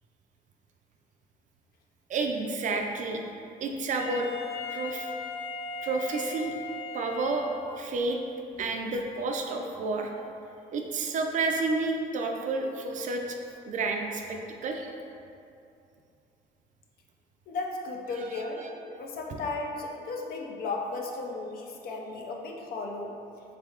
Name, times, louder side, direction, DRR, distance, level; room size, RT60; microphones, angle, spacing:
voice 1, 2.1-3.2 3.6-4.3 4.7-5.1 5.8-6.5 6.9-7.5 7.8-8.2 8.6-10.1 10.7-13.4 13.7-14.9 18.2-18.7, right 3 dB, 50° right, 3 dB, 0.4 m, -30 dB
Wind instrument woodwind instrument, 4.0-7.9, left 4 dB, 90° left, 1.3 m, -38 dB
voice 2, 17.5-18.6 18.9-23.1, left 3 dB, 65° left, 1 dB, 0.5 m, -35 dB
4.0 x 3.4 x 2.4 m, 2.6 s
cardioid pair, 110°, 17 cm